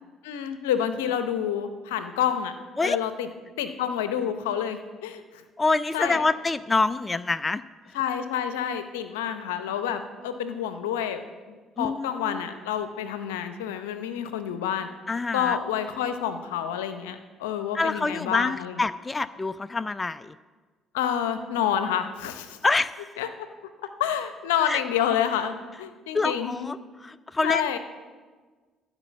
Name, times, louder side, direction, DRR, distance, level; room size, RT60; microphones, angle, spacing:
voice 1, 0.2-2.5 2.8-3.3 3.6-5.4 5.9-6.2 7.9-11.2 11.8-14.9 15.3-18.7 20.9-22.6 23.2-23.5 24.0-26.7 27.4-27.8, left 9 dB, 85° left, 10 dB, 0.7 m, -28 dB
voice 2, 5.6-7.6 7.9-8.0 11.8-12.4 15.1-15.6 17.7-20.3 22.6-23.1 24.7-24.8 26.1-27.8, left 3 dB, 25° left, 15 dB, 0.4 m, -26 dB
13.0 x 5.2 x 7.4 m, 1.4 s
hypercardioid pair, 55°, 0 cm